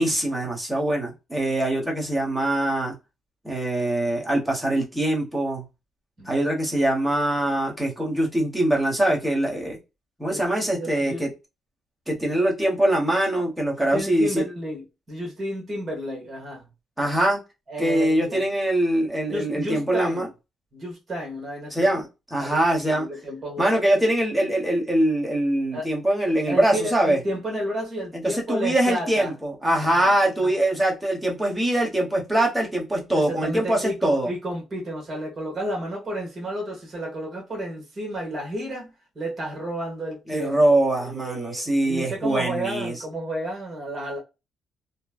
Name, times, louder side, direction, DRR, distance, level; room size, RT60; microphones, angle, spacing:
voice 1, 0.0-2.9 3.4-5.6 6.2-9.8 10.2-11.3 12.1-14.4 17.0-17.4 17.8-20.3 21.7-23.1 23.6-27.2 28.1-34.3 40.3-42.9, right 1 dB, 5° right, 1.3 m, -23 dB
voice 2, 10.3-11.2 13.9-16.7 17.7-18.4 19.3-20.3 20.7-21.9 22.4-23.7 25.7-25.9 26.5-29.3 29.8-30.5 33.1-40.6 41.0-44.2, right 1 dB, 35° right, 1.5 m, -32 dB
3.0 x 2.2 x 2.4 m
cardioid pair, 90°, 0 cm